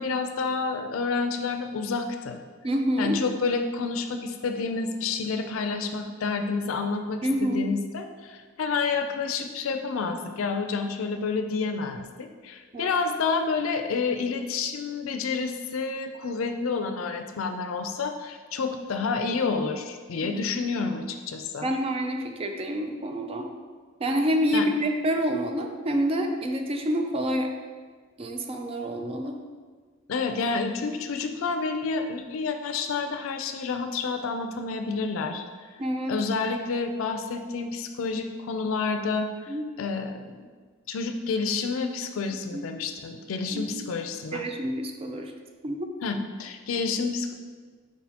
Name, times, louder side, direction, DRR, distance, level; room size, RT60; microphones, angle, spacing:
voice 1, 0.0-2.4 3.0-21.7 24.5-24.7 30.1-35.4 36.1-40.3 40.9-44.4 46.0-47.3, left 4 dB, 85° left, 6 dB, 0.4 m, -29 dB
voice 2, 2.6-3.2 7.2-7.7 12.7-12.9 20.2-20.3 21.6-23.5 24.0-27.5 28.2-29.4 35.8-36.2 39.5-39.6 42.5-42.6 43.5-43.6 44.3-45.3 45.6-45.9, equal, 30° right, 5 dB, 0.4 m, -27 dB
4.5 x 4.1 x 2.8 m, 1.5 s
head